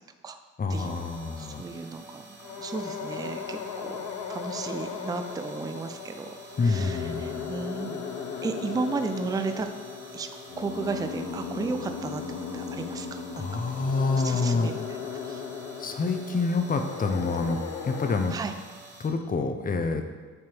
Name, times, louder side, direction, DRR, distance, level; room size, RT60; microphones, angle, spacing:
voice 1, 0.6-1.6 6.6-7.5 8.3-8.5 13.3-14.8 15.8-18.3 19.0-20.0, left 3 dB, 30° left, 6 dB, 0.7 m, -27 dB
sound 1, 0.7-19.1, right 2 dB, 35° right, 1.6 m, -48 dB
voice 2, 1.3-6.3 6.6-8.1 8.4-9.7 10.1-10.3 10.6-12.2 12.5-13.4 14.2-14.8 15.2-15.4 18.3-18.5, right 4 dB, 15° right, 7 dB, 0.4 m, -34 dB
sound 2, 2.4-18.2, left 6 dB, 70° left, 0.6 m, -37 dB
7.7 x 3.7 x 4.5 m, 1.4 s
cardioid pair, 90°, 30 cm